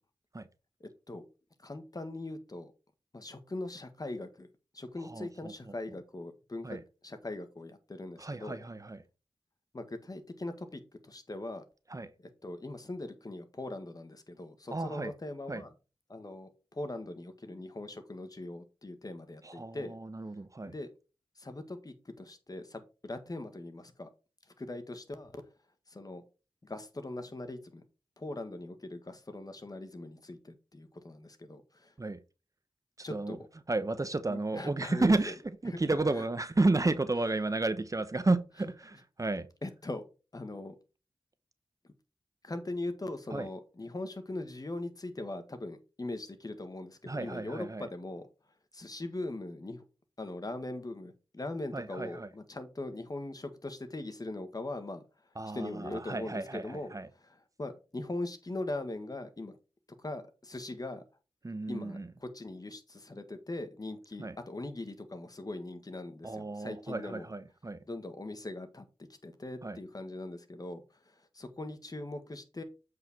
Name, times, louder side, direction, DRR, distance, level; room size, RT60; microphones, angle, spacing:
voice 1, 0.8-1.2 1.6-2.7 3.1-4.5 4.7-6.8 7.0-8.6 9.7-11.6 12.4-15.7 16.1-19.9 20.6-20.9 21.4-24.1 24.6-25.4 25.9-26.2 26.6-27.8 28.2-31.9 33.0-33.5 34.3-35.3 35.7-35.8 36.2-36.3 39.6-40.0 40.3-40.7 42.4-48.2 48.7-49.8 50.2-55.0 55.5-56.9 57.6-59.6 60.0-61.0 61.7-67.3 67.9-68.8 69.2-72.6, left 2 dB, 40° left, 1.5 m, -41 dB
voice 2, 5.0-5.7 6.6-6.8 8.2-9.0 11.9-12.1 14.7-15.1 15.5-15.6 19.4-20.7 32.0-32.2 33.1-33.4 33.7-39.5 43.3-43.5 47.0-47.9 51.7-52.3 55.4-57.1 61.4-62.1 64.2-64.4 66.2-67.8 69.6-69.8, right 2 dB, 35° right, 0.8 m, -32 dB
7.9 x 4.9 x 4.3 m
cardioid pair, 50°, 10 cm